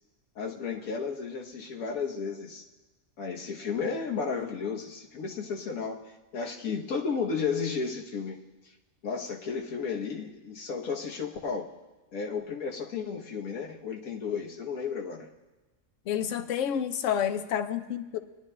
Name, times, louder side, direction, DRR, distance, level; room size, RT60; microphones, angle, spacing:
voice 1, 0.3-2.6 3.2-8.4 9.0-11.7 12.1-15.3, left 5 dB, 90° left, 1 dB, 1.4 m, -33 dB
voice 2, 16.1-18.2, left 9 dB, 70° left, 10 dB, 0.9 m, -29 dB
21.0 x 11.0 x 2.2 m, 1.2 s
omnidirectional pair, 1.4 m